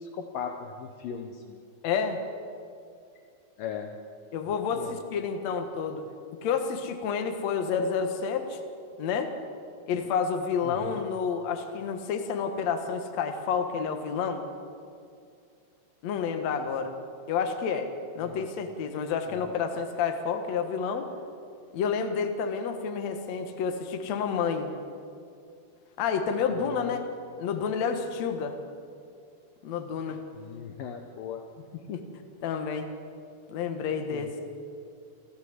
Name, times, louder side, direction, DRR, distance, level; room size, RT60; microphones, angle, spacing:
voice 1, 0.0-1.6 3.6-3.9 4.7-4.9 10.6-11.0 18.2-18.4 26.5-27.0 30.3-31.4 34.1-34.3, left 7 dB, 70° left, 5 dB, 2.4 m, -38 dB
voice 2, 1.8-2.2 4.3-6.0 6.4-8.6 9.0-9.3 9.9-14.4 16.0-16.9 17.3-17.9 18.2-21.1 21.7-24.7 26.0-27.0 27.4-28.6 29.6-30.2 31.9-32.0 32.4-32.9 33.5-34.3, left 6 dB, 55° left, 6 dB, 2.2 m, -29 dB
28.0 x 13.5 x 8.0 m, 2.4 s
omnidirectional pair, 4.5 m